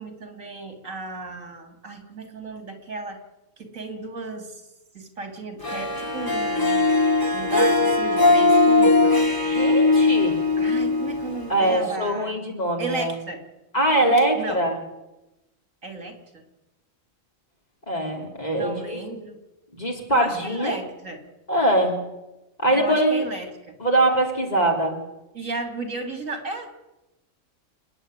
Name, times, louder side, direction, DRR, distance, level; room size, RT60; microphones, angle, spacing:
voice 1, 0.0-3.2 3.6-4.6 4.9-6.9 7.3-9.2 10.6-12.4 12.8-13.4 14.0-14.6 15.8-16.4 18.5-19.4 20.1-21.2 22.7-23.8 25.3-26.7, right 3 dB, 70° right, 5 dB, 3.0 m, -34 dB
Harp, 5.6-11.9, left 3 dB, 15° left, 2.9 m, -20 dB
voice 2, 9.4-10.4 11.5-13.2 13.7-14.8 17.9-19.0 19.7-20.8 21.5-22.0 22.6-23.3 23.8-25.0, right 1 dB, 30° left, 0 dB, 3.6 m, -22 dB
28.5 x 9.9 x 9.6 m, 0.99 s
omnidirectional pair, 1.4 m